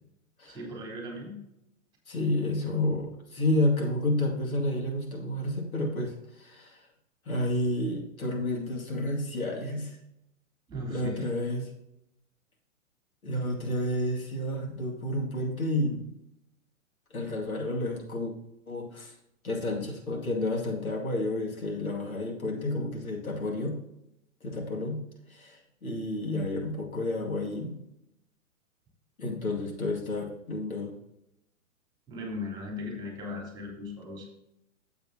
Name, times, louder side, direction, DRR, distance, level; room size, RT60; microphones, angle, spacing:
voice 1, 0.5-1.4 10.7-11.3 32.1-34.3, left 2 dB, 10° right, -1 dB, 3.2 m, -38 dB
voice 2, 2.1-6.8 7.3-10.0 10.9-11.7 13.2-16.0 17.1-18.3 18.7-19.1 19.4-23.8 24.4-25.0 25.3-27.8 29.2-30.9, left 1 dB, 85° left, 0 dB, 2.4 m, -30 dB
12.5 x 7.7 x 2.8 m, 0.83 s
hypercardioid pair, 125°, 41 cm